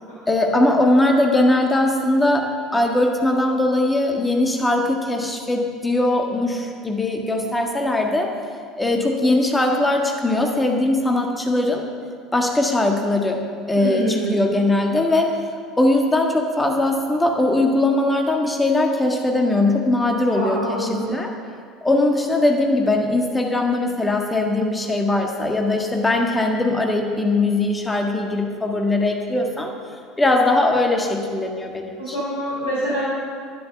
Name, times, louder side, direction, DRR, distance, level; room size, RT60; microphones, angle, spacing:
voice 1, 0.3-8.3 8.8-11.8 12.3-13.4 13.7-15.4 15.8-21.3 21.8-29.7 30.2-32.1, left 2 dB, 10° left, 2 dB, 1.6 m, -20 dB
voice 2, 13.7-14.4 20.2-21.1 32.0-33.0, right 1 dB, 70° left, -8 dB, 3.9 m, -25 dB
12.0 x 11.0 x 6.7 m, 2.2 s
figure-of-eight pair, 65°, 0 cm